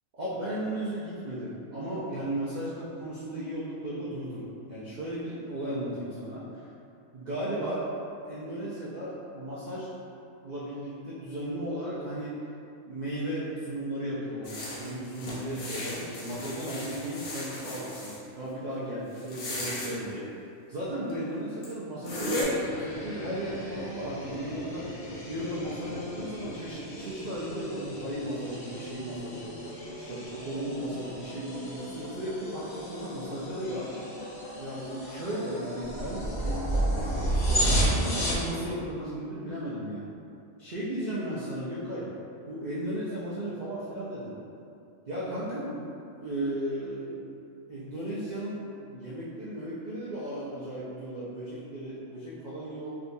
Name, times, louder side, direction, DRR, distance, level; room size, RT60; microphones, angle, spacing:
voice 1, 0.1-6.7 7.1-7.9 8.2-9.9 10.4-12.4 12.9-20.3 20.7-25.0 25.3-29.7 30.1-33.9 34.6-40.1 40.6-42.1 42.5-44.4 45.1-47.4 47.7-52.9, right 1 dB, 75° right, -9 dB, 0.4 m, -35 dB
sound 1, 14.4-18.2 19.2-19.9 21.1-21.2 21.6-21.7 22.0-22.4, left 1 dB, 85° left, 1.1 m, -36 dB
sound 2, 22.2-38.5, right 1 dB, 45° left, 0.6 m, -33 dB
3.4 x 2.9 x 2.6 m, 2.6 s
omnidirectional pair, 1.4 m